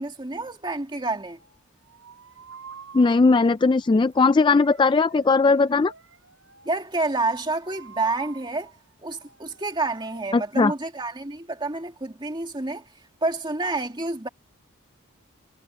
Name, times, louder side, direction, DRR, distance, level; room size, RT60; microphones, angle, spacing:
voice 1, 0.0-1.4 6.7-8.7 9.0-12.8 13.2-14.3, right 2 dB, 20° right, 2.3 m, -28 dB
sound 1, 1.4-10.3, right 5 dB, 60° right, 6.6 m, -48 dB
voice 2, 2.9-5.9 10.3-10.7, left 4 dB, 20° left, 0.3 m, -18 dB
head